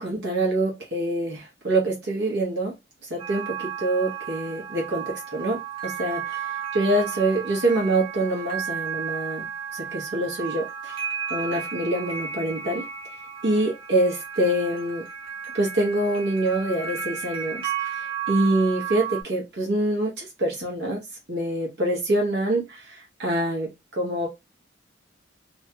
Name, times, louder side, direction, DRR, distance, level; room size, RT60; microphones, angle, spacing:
voice 1, 0.0-2.7 3.1-5.6 5.8-6.4 6.7-10.9 11.3-12.8 13.4-15.0 15.6-17.6 18.3-21.0 21.3-23.7 24.0-24.3, right 1 dB, 65° right, -2 dB, 1.1 m, -25 dB
sound 1, 3.2-19.2, right 7 dB, 30° right, 1.2 m, -33 dB
2.8 x 2.3 x 2.8 m, 0.21 s
head